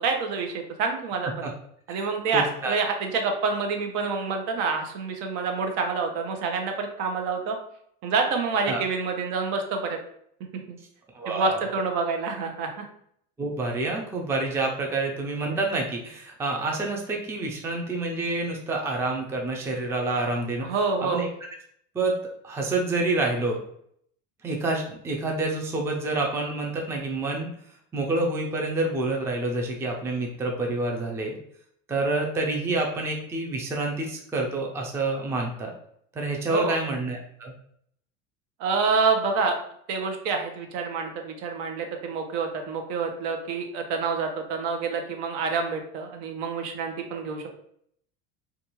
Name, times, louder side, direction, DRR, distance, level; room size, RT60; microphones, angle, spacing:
voice 1, 0.0-1.5 1.9-7.6 8.0-10.0 10.7-10.8 11.3-12.8 20.6-21.2 36.5-36.8 38.6-39.5 39.9-47.5, right 4 dB, 70° right, 4 dB, 0.8 m, -27 dB
voice 2, 2.3-2.8 8.7-8.8 11.1-11.7 13.4-20.7 21.0-21.3 21.9-22.2 22.4-23.6 24.4-27.5 27.9-31.4 31.9-35.7 36.2-37.5, right 2 dB, 5° right, 0 dB, 0.3 m, -28 dB
2.5 x 2.3 x 2.9 m, 0.68 s
supercardioid pair, 110°, 38 cm